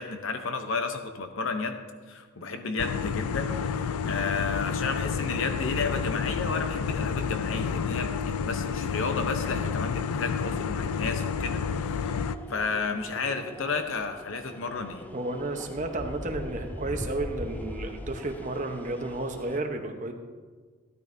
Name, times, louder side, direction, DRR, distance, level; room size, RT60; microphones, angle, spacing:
voice 1, 0.0-1.8 2.1-11.6 11.9-15.1, left 4 dB, 65° left, 6 dB, 0.7 m, -32 dB
sound 1, 2.8-12.4, left 6 dB, 85° left, 0.4 m, -30 dB
sound 2, 5.6-19.6, left 1 dB, 10° left, 0.3 m, -44 dB
voice 2, 15.1-20.1, right 2 dB, 35° right, 4 dB, 0.9 m, -32 dB
13.0 x 12.5 x 2.7 m, 1.4 s
head